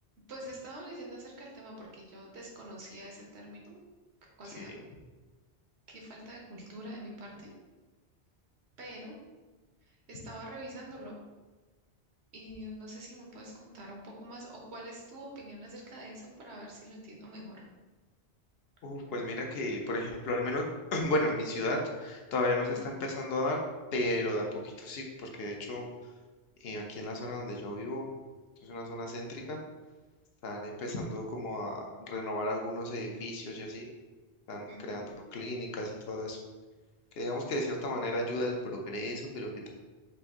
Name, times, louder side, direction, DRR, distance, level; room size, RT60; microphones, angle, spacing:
voice 1, 0.3-3.8 4.4-4.7 5.9-7.5 8.8-9.2 10.1-11.2 12.3-17.6 22.6-22.8 34.7-35.0, right 1 dB, 80° right, -1 dB, 1.2 m, -45 dB
voice 2, 18.8-20.6 20.9-23.6 23.9-25.8 26.6-28.1 28.6-29.6 30.4-33.9 34.5-36.4 37.2-39.7, left 1 dB, 70° left, 1 dB, 0.9 m, -34 dB
4.5 x 2.6 x 3.5 m, 1.3 s
omnidirectional pair, 1.1 m